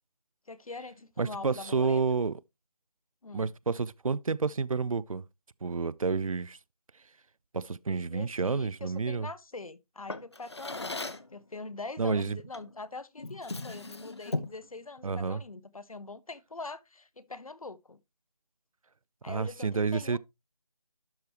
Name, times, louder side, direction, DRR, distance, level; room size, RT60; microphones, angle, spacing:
voice 1, 0.5-2.0 3.2-3.5 7.6-18.0 19.2-20.2, left 3 dB, 70° left, 1.0 m, -43 dB
voice 2, 1.2-2.4 3.3-5.2 5.6-6.6 7.5-9.3 12.0-12.4 15.0-15.4 19.3-20.2, right 4 dB, 65° right, 0.5 m, -29 dB
Drawer open or close, 10.1-11.3 12.5-12.8 13.2-14.7, left 2 dB, 45° left, 0.7 m, -37 dB
12.0 x 4.8 x 2.9 m
figure-of-eight pair, 180°, 19 cm